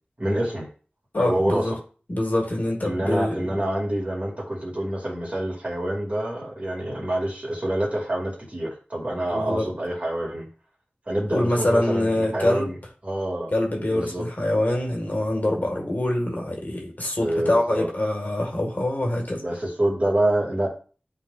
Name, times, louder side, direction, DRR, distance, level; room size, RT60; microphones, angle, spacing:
voice 1, 0.2-0.7 1.2-1.8 2.8-10.5 11.1-13.5 13.9-14.3 17.2-17.9 19.4-20.7, right 1 dB, 40° right, -2 dB, 2.3 m, -27 dB
voice 2, 1.1-1.7 2.1-3.6 9.3-9.6 11.3-12.7 13.5-19.4, left 1 dB, 55° left, 0 dB, 1.7 m, -25 dB
10.5 x 3.8 x 2.5 m, 0.38 s
wide cardioid pair, 65°, 4 cm